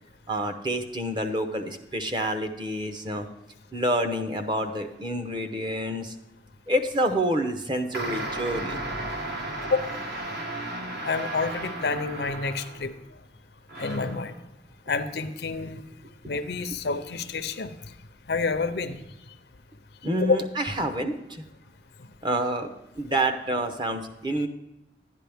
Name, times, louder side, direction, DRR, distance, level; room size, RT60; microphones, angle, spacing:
voice 1, 0.3-3.3 3.7-6.1 6.7-8.8 20.0-21.4 22.2-22.7 23.0-24.5, right 1 dB, 25° right, 6 dB, 0.8 m, -28 dB
sound 1, 7.9-13.0 13.7-14.2, right 1 dB, 60° right, 1.5 m, -34 dB
voice 2, 11.0-12.9 13.8-14.4 14.9-15.8 16.3-17.7 18.3-19.0 20.2-20.4, left 4 dB, 70° left, 10 dB, 0.6 m, -28 dB
11.0 x 10.0 x 3.5 m, 0.89 s
head